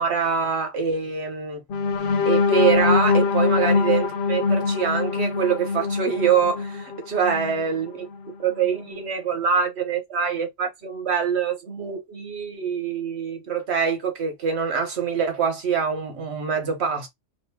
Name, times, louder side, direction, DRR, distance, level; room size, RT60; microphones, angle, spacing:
voice 1, 0.0-1.6 2.2-8.1 8.4-17.1, right 6 dB, 60° right, 1.2 m, -24 dB
sound 1, 1.7-7.6 8.1-8.3 8.7-8.9, left 4 dB, 60° left, 0.5 m, -23 dB
2.9 x 2.7 x 3.4 m
omnidirectional pair, 1.3 m